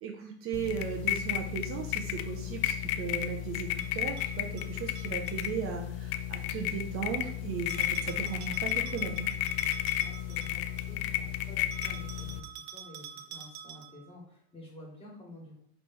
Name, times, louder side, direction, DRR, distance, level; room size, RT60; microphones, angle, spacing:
voice 1, 0.0-9.3, right 7 dB, 40° right, 3 dB, 0.6 m, -37 dB
sound 1, 0.5-12.4, left 12 dB, 65° left, 0.5 m, -33 dB
Bell, 3.8-5.5 7.7-10.9 11.7-14.1, right 9 dB, 80° right, 0.9 m, -48 dB
voice 2, 10.0-15.5, left 1 dB, 15° left, -2 dB, 1.6 m, -51 dB
3.2 x 3.2 x 4.2 m, 0.62 s
supercardioid pair, 115°, 33 cm